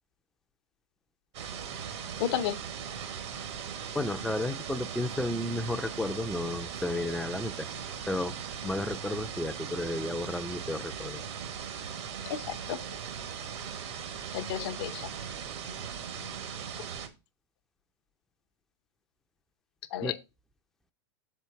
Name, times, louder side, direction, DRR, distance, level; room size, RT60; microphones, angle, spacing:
sound 1, 1.3-17.1, right 7 dB, 65° right, 1.5 m, -39 dB
voice 1, 2.2-2.6 12.2-12.9 14.3-15.1 19.9-20.1, left 10 dB, 60° left, 0.8 m, -32 dB
voice 2, 3.9-7.7 8.1-8.4 8.6-11.2 20.0-20.1, left 1 dB, ahead, 0.5 m, -32 dB
6.8 x 4.5 x 4.7 m
hypercardioid pair, 95°, 15 cm